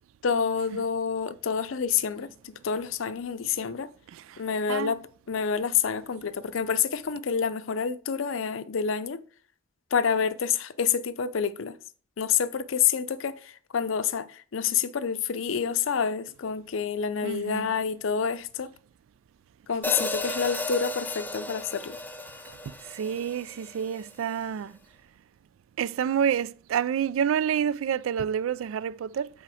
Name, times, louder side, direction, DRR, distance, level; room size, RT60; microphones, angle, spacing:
voice 1, 0.2-3.9 4.4-9.2 9.9-11.8 12.2-18.7 19.7-22.0, left 7 dB, 75° left, 0.5 m, -28 dB
voice 2, 17.2-17.7 22.7-24.8 25.8-29.3, right 8 dB, 90° right, 0.3 m, -28 dB
Hi-hat, 19.8-24.0, left 2 dB, 10° left, 0.6 m, -34 dB
7.6 x 4.3 x 4.8 m
head